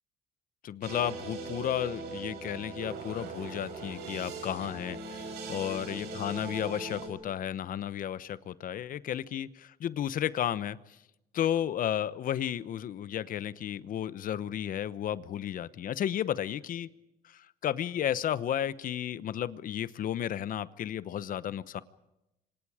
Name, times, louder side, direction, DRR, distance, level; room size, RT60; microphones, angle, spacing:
voice 1, 0.6-10.8 11.3-16.9 17.2-21.8, left 10 dB, 55° left, 16 dB, 1.0 m, -33 dB
sound 1, 0.8-7.1, right 3 dB, 80° right, 6.2 m, -40 dB
30.0 x 25.5 x 5.0 m, 0.90 s
cardioid pair, 110°, 17 cm